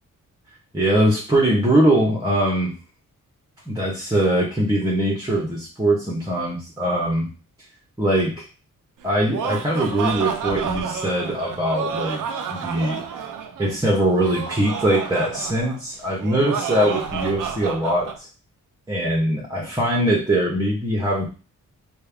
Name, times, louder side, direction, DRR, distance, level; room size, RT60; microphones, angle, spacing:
voice 1, 0.7-2.7 3.7-7.3 8.0-8.5 9.0-12.2 12.5-13.0 13.6-18.1 18.9-21.3, right 1 dB, 10° right, -3 dB, 1.1 m, -21 dB
Laughter, 9.0-18.2, right 6 dB, 70° right, 0.6 m, -30 dB
3.4 x 2.5 x 3.4 m, 0.35 s
cardioid pair, 70°, 33 cm